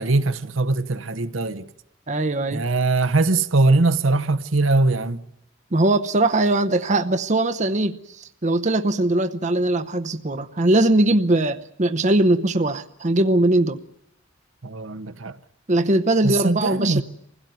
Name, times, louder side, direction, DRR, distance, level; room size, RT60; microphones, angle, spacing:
voice 1, 0.0-1.7 2.5-5.2 14.6-15.3 16.2-17.0, right 3 dB, 75° right, 1.0 m, -21 dB
voice 2, 2.1-2.6 5.7-13.8 15.7-17.0, right 2 dB, 35° right, 0.8 m, -20 dB
24.5 x 16.5 x 9.3 m
head